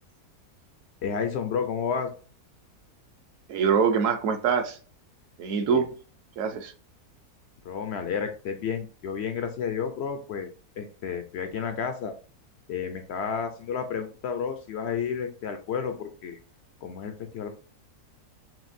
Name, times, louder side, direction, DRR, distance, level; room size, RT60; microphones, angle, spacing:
voice 1, 1.0-2.1 5.7-5.8 7.6-10.5 10.8-12.1 12.7-16.4 16.8-17.5, left 6 dB, 75° left, 7 dB, 0.6 m, -31 dB
voice 2, 3.5-4.8 5.4-5.9 6.4-6.7, right 6 dB, 65° right, 6 dB, 0.9 m, -24 dB
5.7 x 2.5 x 2.6 m, 0.37 s
omnidirectional pair, 1.7 m